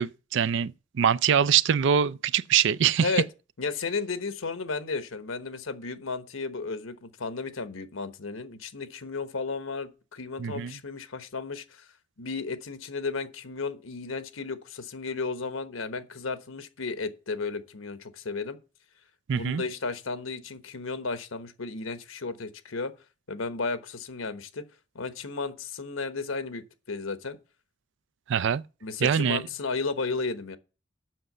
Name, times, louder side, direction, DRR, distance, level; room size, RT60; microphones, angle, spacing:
voice 1, 0.0-3.1 10.4-10.7 19.3-19.6 28.3-28.6 29.0-29.4, right 8 dB, 65° right, 0.4 m, -24 dB
voice 2, 3.6-11.8 12.2-18.6 19.3-22.9 23.3-24.6 24.9-26.6 26.9-27.4 28.8-30.6, left 4 dB, 85° left, 1.1 m, -33 dB
7.8 x 6.2 x 7.8 m
head